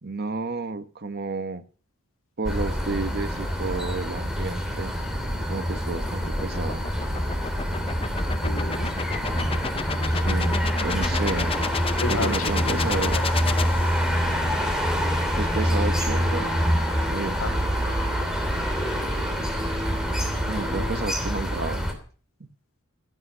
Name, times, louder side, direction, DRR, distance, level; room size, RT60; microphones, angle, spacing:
voice 1, 0.0-1.6 2.4-5.0 5.5-6.9 10.1-11.6 12.1-13.3 15.3-16.6 17.1-17.4 20.5-21.9, right 3 dB, 50° right, 1.2 m, -31 dB
sound 1, 2.5-21.9, equal, 5° right, 3.0 m, -26 dB
sound 2, 4.3-14.4, left 4 dB, 25° left, 0.7 m, -32 dB
voice 2, 8.4-8.9 12.0-12.6 13.1-13.2 17.4-17.9 20.7-21.0, left 2 dB, 75° left, 2.2 m, -32 dB
sound 3, 14.1-21.6, right 1 dB, 25° right, 1.9 m, -40 dB
16.0 x 8.9 x 6.7 m
head